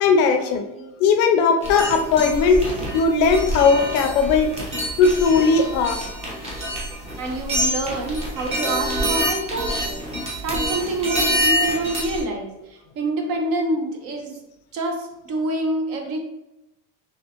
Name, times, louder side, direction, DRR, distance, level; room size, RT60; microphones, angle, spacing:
voice 1, 0.0-0.7 1.0-4.5 5.0-6.1, left 5 dB, 50° left, 6 dB, 0.4 m, -18 dB
sound 1, 1.6-12.2, equal, 20° right, 0.9 m, -26 dB
voice 2, 7.2-10.0 10.4-14.3 14.7-16.2, right 2 dB, 50° right, 3 dB, 0.6 m, -27 dB
3.5 x 3.3 x 2.8 m, 0.95 s
cardioid pair, 175°, 30 cm